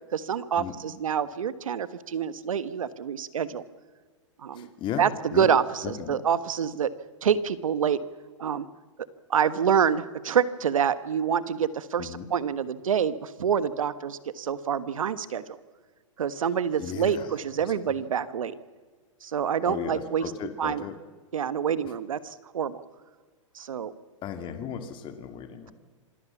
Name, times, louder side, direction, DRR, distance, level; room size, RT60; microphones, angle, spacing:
voice 1, 0.1-3.6 4.4-4.7 5.0-6.9 7.2-8.0 8.4-8.7 9.3-15.6 16.2-18.5 19.2-20.3 20.6-20.8 21.3-22.8 23.5-23.9, right 8 dB, 85° right, 14 dB, 1.4 m, -27 dB
voice 2, 4.5-5.1 5.3-5.5 5.8-6.2 12.0-12.3 16.8-17.4 17.7-18.0 19.6-21.0 21.8-21.9 24.2-25.7, left 8 dB, 30° left, 8 dB, 2.3 m, -36 dB
26.5 x 18.0 x 7.3 m, 1.4 s
hypercardioid pair, 130°, 17 cm